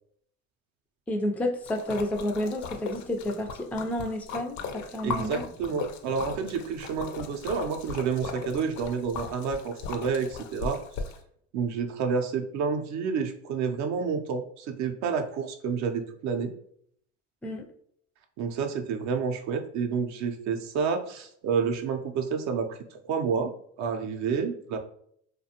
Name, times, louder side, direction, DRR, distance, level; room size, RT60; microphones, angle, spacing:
voice 1, 1.1-5.5 17.4-17.7, left 1 dB, 5° left, 2 dB, 0.3 m, -30 dB
Splash splatter, 1.7-11.2, left 5 dB, 60° left, 0.5 m, -38 dB
voice 2, 5.0-10.8 11.5-16.5 18.4-22.8 23.1-24.8, right 6 dB, 55° right, 6 dB, 0.5 m, -29 dB
2.4 x 2.2 x 2.8 m, 0.66 s
supercardioid pair, 85°, 33 cm